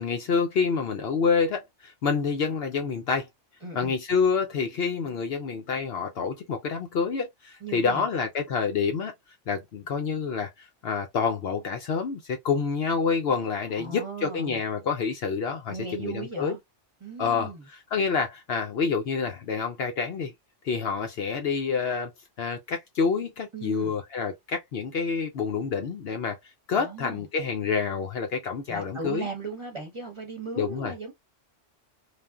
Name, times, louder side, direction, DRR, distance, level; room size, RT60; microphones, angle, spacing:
voice 1, 0.0-3.3 3.7-9.1 9.5-16.6 17.2-17.5 17.9-20.3 20.6-22.1 22.4-26.4 26.7-29.3 30.5-30.9, left 5 dB, 60° left, 0.8 m, -28 dB
voice 2, 3.6-3.9 7.6-8.1 13.8-14.6 15.7-16.6 17.0-17.6 23.5-23.9 26.7-27.2 28.7-31.1, right 4 dB, 30° right, 0.9 m, -37 dB
3.3 x 2.4 x 2.3 m
omnidirectional pair, 1.3 m